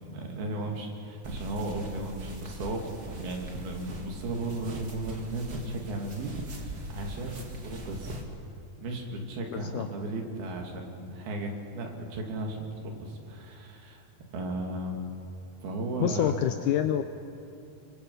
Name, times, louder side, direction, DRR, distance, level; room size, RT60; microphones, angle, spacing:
voice 1, 0.0-8.1 8.8-14.0 14.3-15.0 15.6-16.3, right 2 dB, 80° right, 1 dB, 4.3 m, -35 dB
sound 1, 1.2-8.2, right 1 dB, 35° right, 1.9 m, -41 dB
voice 2, 9.5-9.9 16.0-17.0, left 11 dB, 80° left, 8 dB, 1.8 m, -27 dB
25.0 x 24.0 x 5.5 m, 2.9 s
omnidirectional pair, 4.4 m